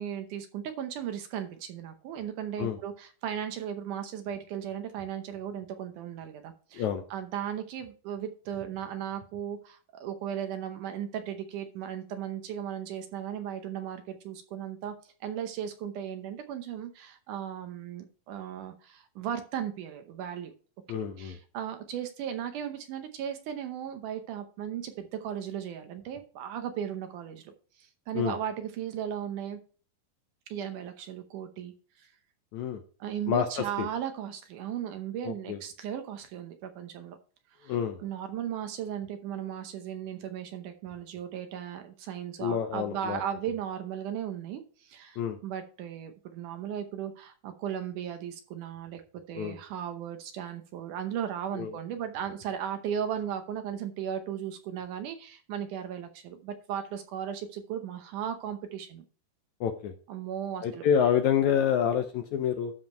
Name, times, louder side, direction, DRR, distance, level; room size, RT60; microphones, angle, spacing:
voice 1, 0.0-6.8 7.1-14.9 15.2-20.5 20.9-27.5 27.8-29.6 30.5-31.7 32.0-32.1 33.0-37.2 37.6-37.8 38.0-49.0 49.3-59.0 60.1-60.9, right 9 dB, 70° right, 7 dB, 2.2 m, -36 dB
voice 2, 6.7-7.0 20.9-21.4 28.1-28.3 32.5-32.8 33.3-33.9 35.2-35.6 37.6-38.0 42.4-43.2 45.2-45.4 49.3-49.6 51.5-51.7 59.6-59.9 60.6-62.7, left 8 dB, 75° left, 6 dB, 1.8 m, -28 dB
12.5 x 5.0 x 4.5 m, 0.40 s
omnidirectional pair, 4.1 m